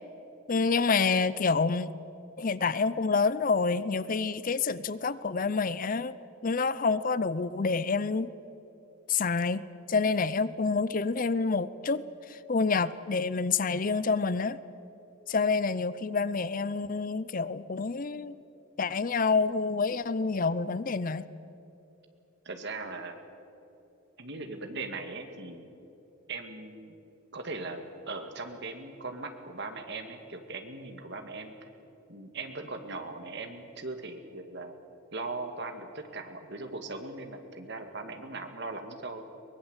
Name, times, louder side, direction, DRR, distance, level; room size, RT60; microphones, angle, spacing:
voice 1, 0.5-1.9 2.4-6.1 6.4-8.3 9.1-12.0 12.3-14.6 15.3-18.4 18.8-21.3, left 4 dB, 40° left, 16 dB, 0.6 m, -28 dB
voice 2, 22.5-23.2 24.2-25.7 26.3-27.0 27.3-31.7 32.1-34.7 35.1-39.3, right 3 dB, 55° right, 6 dB, 2.2 m, -39 dB
23.0 x 20.5 x 8.1 m, 2.9 s
head